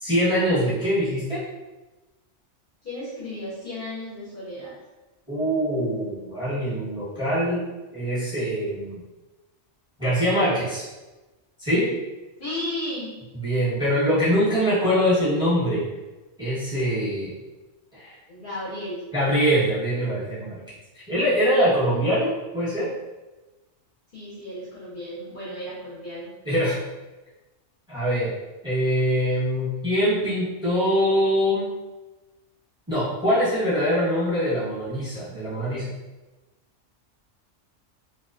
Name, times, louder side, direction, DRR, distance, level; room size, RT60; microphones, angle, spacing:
voice 1, 0.0-1.4 5.3-7.6 7.9-9.0 10.0-10.8 11.6-11.9 13.3-15.8 16.4-17.4 17.9-18.2 19.1-20.6 20.9-22.9 26.4-26.8 27.9-28.3 28.6-31.7 32.9-35.9, equal, 5° right, -10 dB, 0.9 m, -23 dB
voice 2, 2.8-4.7 12.4-13.1 18.3-19.0 24.1-26.3, left 1 dB, 50° left, -10 dB, 0.7 m, -34 dB
2.3 x 2.2 x 2.4 m, 1.1 s
omnidirectional pair, 1.3 m